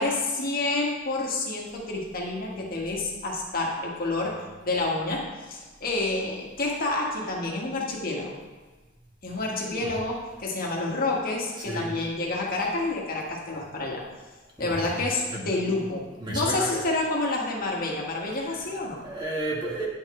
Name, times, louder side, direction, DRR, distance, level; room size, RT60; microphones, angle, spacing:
voice 1, 0.0-8.4 9.2-14.0 14.6-19.0, left 2 dB, 45° left, -2 dB, 1.6 m, -29 dB
voice 2, 14.6-15.0 15.3-15.8 16.2-16.8 18.5-18.6 19.0-19.9, right 1 dB, 25° right, -4 dB, 1.6 m, -33 dB
9.9 x 5.8 x 3.8 m, 1.3 s
head